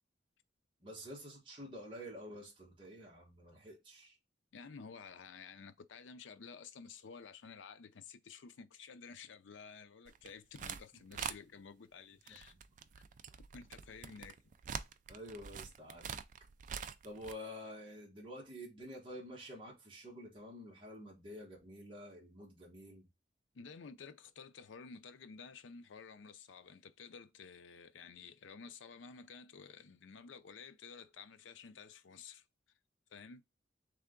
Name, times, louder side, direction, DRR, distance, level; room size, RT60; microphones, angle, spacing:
voice 1, 0.8-4.2 12.3-12.4 15.1-16.1 17.0-23.1, equal, 25° right, 1.3 m, -49 dB
voice 2, 4.5-12.5 13.0-13.1 13.5-14.4 23.5-32.4 33.1-33.4, left 5 dB, 85° left, 0.5 m, -52 dB
sound 1, 10.1-10.8 11.1-11.4 12.2-17.3, right 7 dB, 45° right, 0.3 m, -45 dB
3.5 x 3.4 x 3.7 m
head